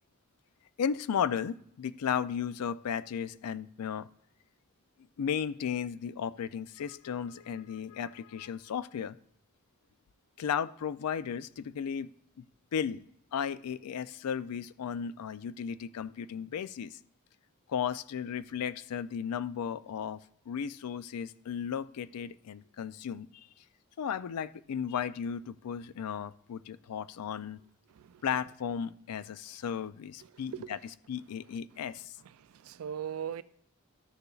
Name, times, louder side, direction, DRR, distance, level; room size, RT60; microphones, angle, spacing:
voice 1, 0.8-4.1 5.2-9.2 10.4-12.1 12.4-12.5 12.7-13.0 13.3-17.0 17.7-20.2 20.5-23.5 24.0-27.6 28.2-30.8 31.1-32.2, left 7 dB, 90° left, 0.4 m, -35 dB
voice 2, 30.2-30.8 32.2-33.4, right 8 dB, 70° right, 0.3 m, -40 dB
12.5 x 6.7 x 2.3 m
head